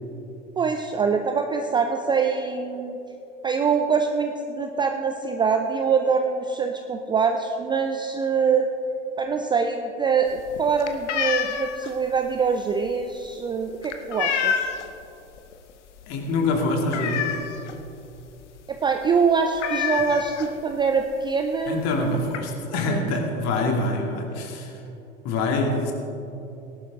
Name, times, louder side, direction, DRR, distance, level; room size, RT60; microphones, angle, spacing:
voice 1, 0.6-3.0 3.4-8.7 9.2-14.7 18.7-22.2 22.9-23.0, right 5 dB, 10° right, 5 dB, 0.4 m, -24 dB
sound 1, 10.3-15.0 15.4-15.7 16.0-16.1 16.4-17.8 18.2-18.3 18.6-18.8 19.0-19.1 19.6-20.8 21.6-21.7 22.0-22.4, left 8 dB, 65° left, 1.1 m, -28 dB
voice 2, 16.1-17.3 20.0-20.1 21.7-24.7 25.2-25.9, left 2 dB, 45° left, 1 dB, 2.3 m, -25 dB
18.5 x 11.5 x 3.6 m, 2.9 s
figure-of-eight pair, 85°, 39 cm